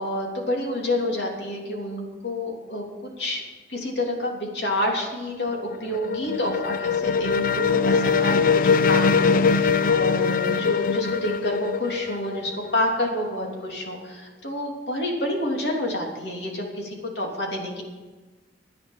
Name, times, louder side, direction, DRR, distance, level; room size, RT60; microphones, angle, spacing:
voice 1, 0.0-3.4 3.7-17.8, left 1 dB, 75° left, 0 dB, 3.2 m, -28 dB
sound 1, 5.3-13.1, left 5 dB, 50° left, 0.4 m, -22 dB
14.0 x 9.4 x 7.4 m, 1.3 s
head